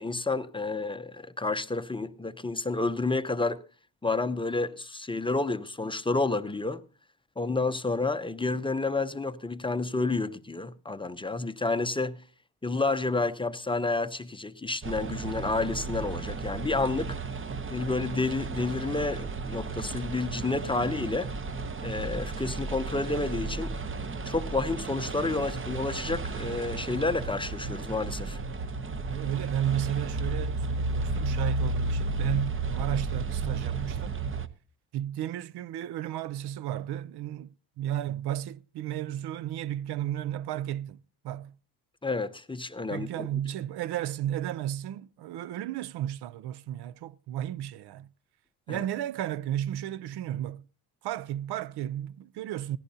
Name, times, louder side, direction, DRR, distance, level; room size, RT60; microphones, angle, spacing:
voice 1, 0.0-3.6 4.0-6.8 7.4-12.2 12.6-17.2 17.7-21.3 21.8-23.7 24.2-28.4 42.0-43.3 48.7-48.8, left 3 dB, 10° left, 0.6 m, -30 dB
sound 1, 14.8-34.5, right 3 dB, 30° right, 0.9 m, -33 dB
voice 2, 29.1-34.2 34.9-37.5 37.8-41.5 42.9-48.1 48.7-50.6 51.0-52.8, right 11 dB, 70° right, 0.5 m, -33 dB
18.0 x 15.0 x 2.7 m
cardioid pair, 115°, 41 cm